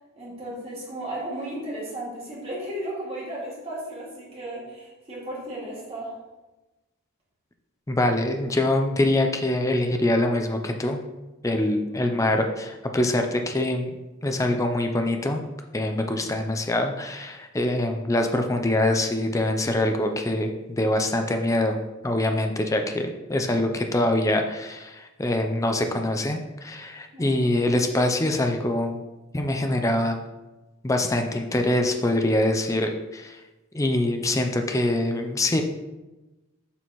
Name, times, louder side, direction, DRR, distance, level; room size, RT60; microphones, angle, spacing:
voice 1, 0.2-6.2 11.8-12.0 22.9-23.0 27.1-27.3, right 1 dB, 25° right, -6 dB, 2.2 m, -35 dB
voice 2, 7.9-11.0 11.4-14.0 14.2-15.4 15.7-21.8 22.0-29.0 29.3-30.2 30.8-33.4 33.7-35.6, left 1 dB, 15° left, 5 dB, 0.4 m, -24 dB
7.0 x 6.2 x 3.0 m, 1.1 s
head